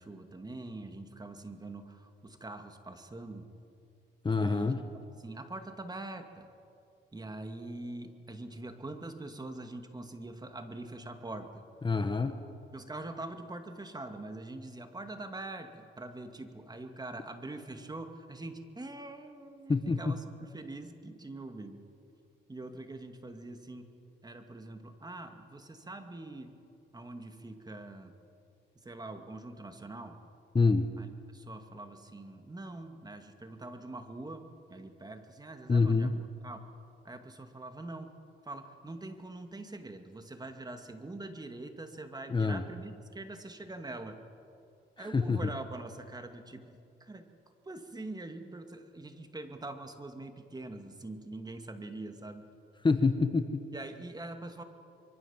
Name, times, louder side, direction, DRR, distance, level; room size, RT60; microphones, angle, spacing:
voice 1, 0.0-3.5 4.3-4.7 5.1-6.5 7.1-11.6 12.7-21.8 22.5-23.9 24.2-26.5 26.9-28.1 28.8-30.2 31.0-36.7 37.0-38.1 38.4-44.2 45.0-47.3 47.7-52.5 53.7-54.6, right 2 dB, 20° right, 6 dB, 2.4 m, -44 dB
voice 2, 4.2-4.8 11.8-12.4 19.7-20.1 30.5-30.9 35.7-36.1 42.3-42.6 45.0-45.5 52.8-53.6, left 4 dB, 25° left, 8 dB, 1.3 m, -26 dB
25.0 x 23.5 x 7.5 m, 2.5 s
cardioid pair, 90°, 20 cm